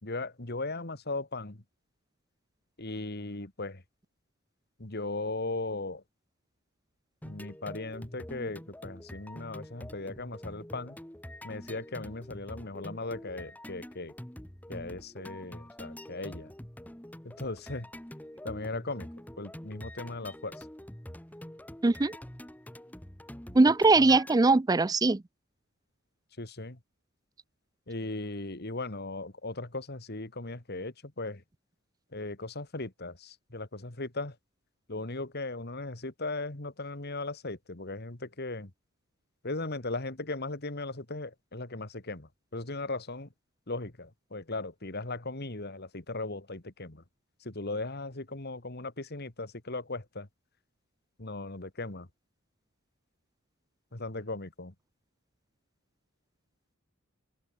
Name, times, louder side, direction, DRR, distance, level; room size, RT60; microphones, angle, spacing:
voice 1, 0.0-1.6 2.8-3.8 4.8-6.0 7.2-11.0 11.4-14.1 14.7-16.5 17.2-17.9 18.4-19.1 19.4-20.7 23.5-23.6 23.9-24.2 26.4-26.8 27.9-31.4 32.1-34.4 34.9-38.7 39.4-43.3 43.7-47.0 47.4-50.3 51.2-52.1 53.9-54.7, left 2 dB, 50° left, 2.3 m, -37 dB
sound 1, 7.2-24.4, left 1 dB, 10° left, 1.2 m, -46 dB
voice 2, 21.8-22.2 23.5-25.2, right 3 dB, 20° right, 0.4 m, -21 dB
head